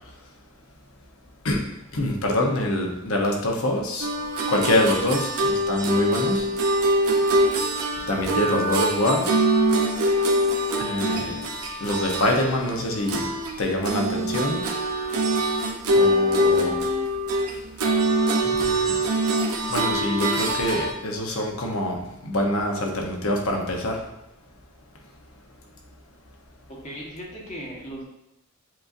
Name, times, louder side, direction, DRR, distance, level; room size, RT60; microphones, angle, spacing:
voice 1, 1.9-4.1 4.5-6.5 8.1-9.3 10.8-11.3 11.8-13.3 13.6-14.6 15.9-16.8 18.4-19.0 19.7-24.0, left 1 dB, 70° left, 1 dB, 0.8 m, -25 dB
sound 1, 4.0-13.6 13.9-20.9, right 1 dB, 80° right, 0.6 m, -24 dB
voice 2, 26.7-28.0, equal, 35° left, -3 dB, 1.1 m, -37 dB
7.5 x 2.6 x 2.5 m, 0.85 s
head